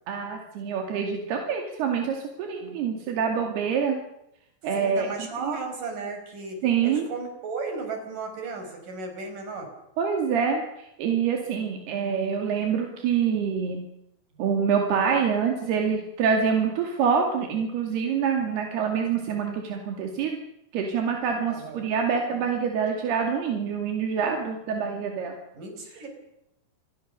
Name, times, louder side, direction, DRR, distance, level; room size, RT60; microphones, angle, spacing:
voice 1, 0.1-4.0 4.6-5.6 6.6-7.1 10.0-13.8 14.4-20.4 20.7-25.3, right 6 dB, 80° right, 3 dB, 4.4 m, -26 dB
voice 2, 4.7-9.7 21.5-21.9 25.5-26.1, right 4 dB, 55° right, 5 dB, 7.0 m, -35 dB
27.5 x 22.0 x 6.8 m, 0.82 s
omnidirectional pair, 4.6 m